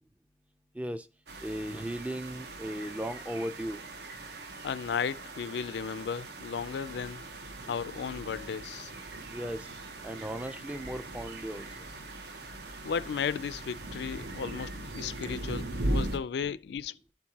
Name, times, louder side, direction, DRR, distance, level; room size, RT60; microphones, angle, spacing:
voice 1, 0.7-1.1 1.4-3.8 9.3-9.7 10.0-11.8, right 1 dB, 5° right, 0.3 m, -36 dB
sound 1, 1.3-16.2, right 1 dB, 70° right, 0.9 m, -39 dB
voice 2, 4.6-7.2 7.7-8.9 12.8-17.1, left 6 dB, 70° left, 0.3 m, -35 dB
12.0 x 4.5 x 2.8 m
head